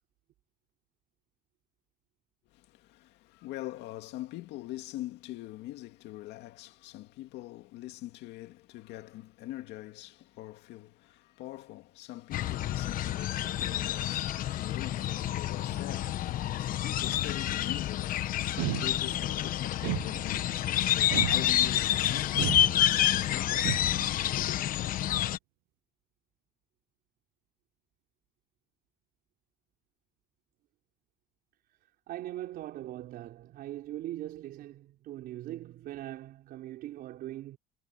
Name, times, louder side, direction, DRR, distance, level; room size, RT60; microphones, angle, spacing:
voice 1, 2.5-18.2 18.7-22.5 22.9-23.7 24.3-24.6, left 16 dB, 75° left, 2.1 m, -43 dB
sound 1, 12.3-25.4, left 12 dB, 50° left, 1.1 m, -29 dB
sound 2, 18.6-19.3 19.8-20.6 21.1-21.9 22.4-23.2 23.6-24.2, right 22 dB, 80° right, 0.5 m, -34 dB
voice 2, 32.1-37.6, right 14 dB, 60° right, 4.5 m, -41 dB
cardioid pair, 140°, 18 cm